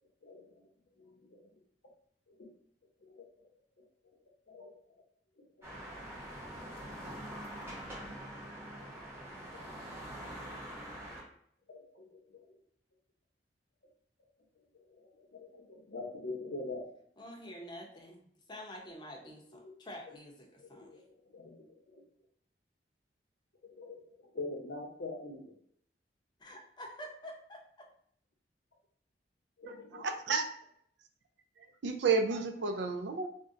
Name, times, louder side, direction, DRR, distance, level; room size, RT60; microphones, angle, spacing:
voice 1, 0.2-0.5 1.0-1.5 2.3-2.4 3.0-3.2 4.5-4.7 5.4-5.5 6.1-6.2 6.8-6.9 9.5-10.0 11.7-12.4 14.7-16.8 20.6-21.0 21.3-22.0 23.7-24.0 24.3-25.5 29.6-30.0, left 3 dB, 70° left, 0 dB, 0.8 m, -44 dB
sound 1, 5.6-11.2, right 1 dB, 15° right, 0.9 m, -44 dB
voice 2, 17.2-21.0 26.4-27.6, equal, 25° left, 0 dB, 0.6 m, -48 dB
voice 3, 29.6-30.4 31.8-33.3, right 5 dB, 80° right, 6 dB, 0.4 m, -31 dB
2.5 x 2.1 x 3.6 m, 0.66 s
head